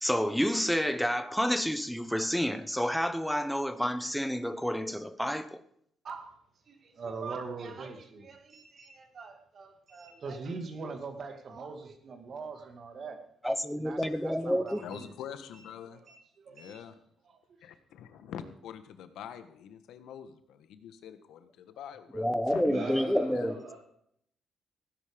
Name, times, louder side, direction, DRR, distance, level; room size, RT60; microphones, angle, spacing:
voice 1, 0.0-5.6 13.4-14.8 22.1-23.6, equal, ahead, 0.9 m, -29 dB
voice 2, 6.0-6.4 6.7-13.2 13.8-15.1 15.5-15.6 15.9-16.7, right 4 dB, 50° right, 2.3 m, -42 dB
voice 3, 14.8-16.0 16.5-16.9 17.6-22.7 23.3-23.5, left 9 dB, 80° left, 1.4 m, -45 dB
voice 4, 22.6-23.8, right 3 dB, 70° right, 5.1 m, -40 dB
16.5 x 10.0 x 5.2 m
cardioid pair, 90°, 0 cm